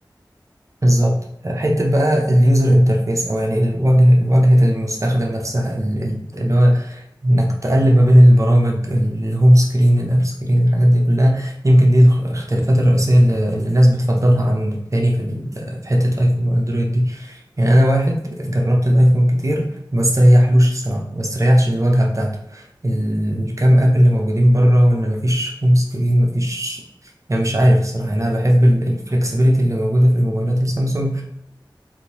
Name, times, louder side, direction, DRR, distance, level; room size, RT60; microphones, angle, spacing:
voice 1, 0.8-1.2 1.4-26.8 27.3-31.2, equal, 40° right, 0 dB, 0.7 m, -16 dB
3.6 x 2.6 x 2.9 m, 0.77 s
wide cardioid pair, 50°, 8 cm